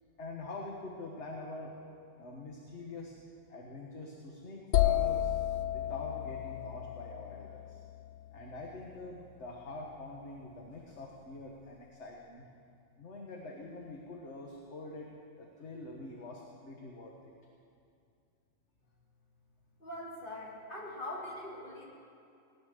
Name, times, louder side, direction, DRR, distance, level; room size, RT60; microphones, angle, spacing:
voice 1, 0.2-1.7 2.2-3.1 3.5-5.3 5.7-7.8 8.3-12.5 13.0-15.1 15.4-17.3, left 2 dB, 55° left, -1 dB, 1.7 m, -45 dB
sound 1, 4.7-8.5, left 13 dB, 70° left, 1.0 m, -32 dB
voice 2, 19.8-21.8, left 1 dB, 35° left, -5 dB, 3.4 m, -42 dB
18.5 x 11.0 x 6.6 m, 2.5 s
omnidirectional pair, 1.4 m